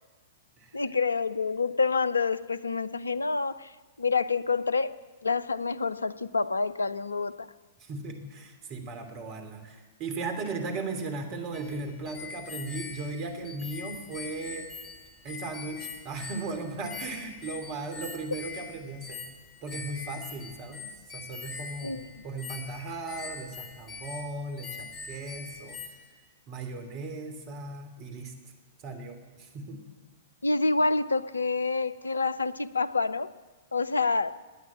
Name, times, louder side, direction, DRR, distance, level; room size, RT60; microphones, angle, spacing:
voice 1, 0.7-3.7 4.0-7.5 21.8-22.2 30.4-33.3 33.7-34.3, left 4 dB, 80° left, 17 dB, 0.6 m, -27 dB
voice 2, 7.8-14.7 15.2-19.2 19.6-25.8 26.5-28.3 28.8-29.8, right 3 dB, 40° right, 6 dB, 2.9 m, -37 dB
sound 1, 11.5-25.9, left 4 dB, 25° left, 2.7 m, -43 dB
18.0 x 9.5 x 8.6 m, 1.3 s
figure-of-eight pair, 105°, 0 cm